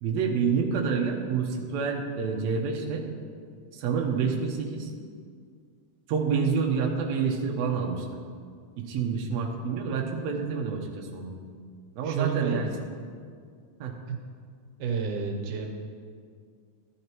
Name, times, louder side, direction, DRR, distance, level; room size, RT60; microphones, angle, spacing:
voice 1, 0.0-3.1 3.7-4.9 6.1-8.1 8.8-11.3 12.0-12.7 13.8-13.9, right 5 dB, 70° right, 0 dB, 2.2 m, -28 dB
voice 2, 12.0-12.6 14.1-14.2 14.8-15.7, right 6 dB, 85° right, 3 dB, 2.5 m, -30 dB
13.5 x 11.5 x 3.0 m, 2.1 s
omnidirectional pair, 3.5 m